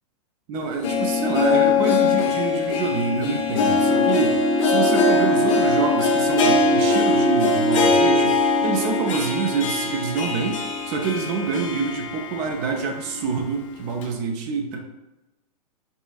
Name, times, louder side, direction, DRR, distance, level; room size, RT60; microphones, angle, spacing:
voice 1, 0.5-14.8, right 5 dB, 30° right, 3 dB, 0.4 m, -26 dB
Harp, 0.6-12.7 13.1-13.2 14.0-14.1, left 3 dB, 50° left, 0.6 m, -21 dB
5.4 x 2.4 x 2.3 m, 1.0 s
figure-of-eight pair, 105°, 21 cm